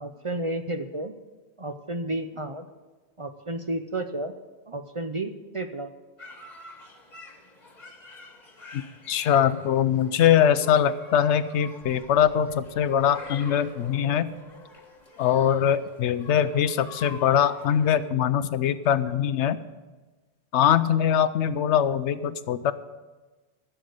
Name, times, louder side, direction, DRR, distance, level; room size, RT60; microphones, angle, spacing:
voice 1, 0.0-1.1 1.6-2.7 3.2-4.3 4.7-5.9, right 2 dB, 35° right, 7 dB, 0.5 m, -32 dB
sound 1, 6.2-18.1, left 3 dB, 40° left, 1.5 m, -47 dB
voice 2, 9.1-14.3 15.2-19.6 20.5-22.7, left 9 dB, 90° left, 14 dB, 0.9 m, -22 dB
sound 2, 12.0-16.7, left 3 dB, 55° right, 4.5 m, -51 dB
13.5 x 6.8 x 8.0 m, 1.2 s
omnidirectional pair, 1.1 m